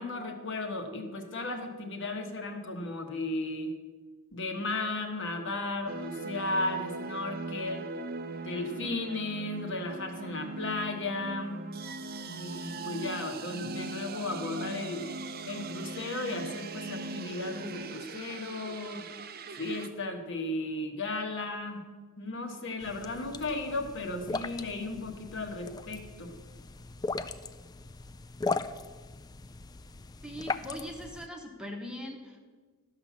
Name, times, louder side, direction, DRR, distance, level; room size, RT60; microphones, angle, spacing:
voice 1, 0.0-3.7 4.3-7.9 8.4-11.6 12.3-15.0 15.4-19.0 19.5-21.8 22.2-26.3, left 2 dB, 55° left, 4 dB, 1.3 m, -35 dB
sound 1, 5.9-19.9, right 3 dB, 45° right, 0.6 m, -40 dB
sound 2, 22.8-31.3, left 3 dB, 20° left, 0.3 m, -38 dB
voice 2, 30.2-32.6, left 1 dB, 5° right, 1 dB, 1.1 m, -41 dB
13.0 x 5.8 x 7.3 m, 1.4 s
head